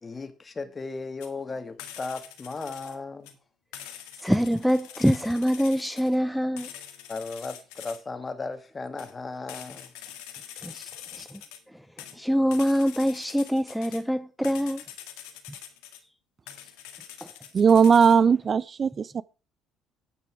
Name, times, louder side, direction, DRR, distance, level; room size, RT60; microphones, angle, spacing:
voice 1, 0.0-3.4 7.1-9.9, left 3 dB, 30° left, 2.0 m, -36 dB
sound 1, 1.2-1.3 1.8-3.0 3.3-3.4 3.7-6.2 6.6-8.0 9.0-9.2 9.5-11.6 12.0-14.0 14.4-16.0 16.5-18.2, left 10 dB, 80° left, 1.9 m, -44 dB
voice 2, 4.2-6.7 10.6-11.4 11.7-11.8 12.1-14.8 17.2-17.3, equal, ahead, 0.7 m, -25 dB
voice 3, 17.5-19.2, right 6 dB, 40° right, 0.4 m, -19 dB
9.7 x 9.5 x 4.8 m
hypercardioid pair, 60°, 0 cm